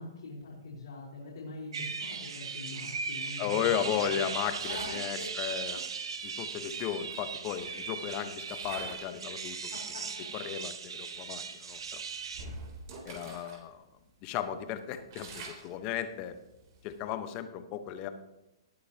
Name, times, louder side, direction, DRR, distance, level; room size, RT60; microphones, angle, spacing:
voice 1, 0.0-4.2 4.6-5.3 9.7-10.0 10.5-10.6, left 2 dB, 70° left, -6 dB, 4.4 m, -44 dB
sound 1, 1.7-12.5, right 5 dB, 80° right, 1.3 m, -38 dB
voice 2, 3.4-5.8 6.2-9.6 10.3-12.0 13.0-13.8 14.2-16.3 16.8-18.1, left 9 dB, 35° left, 9 dB, 1.1 m, -35 dB
sound 2, 4.4-5.1 6.3-6.4 6.7-7.9 8.4-9.2 9.6-9.8 10.5-10.6 10.9-11.2 11.7-13.6 14.0-14.1 14.5-17.0, right 3 dB, 50° right, 3.4 m, -47 dB
19.0 x 8.3 x 2.9 m, 0.93 s
hypercardioid pair, 135°, 3 cm